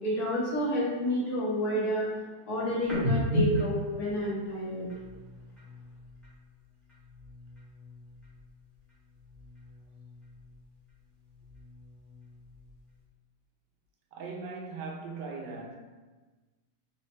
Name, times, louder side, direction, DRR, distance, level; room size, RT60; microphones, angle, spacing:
voice 1, 0.0-2.1 2.5-4.9, equal, 65° left, 1.5 m, -29 dB
sound 1, 2.8-6.4 6.7-8.6 8.8-10.7 11.1-12.9, equal, ahead, 0.7 m, -36 dB
voice 2, 14.1-15.8, right 4 dB, 85° right, 1.2 m, -39 dB
4.0 x 2.1 x 3.2 m
omnidirectional pair, 1.8 m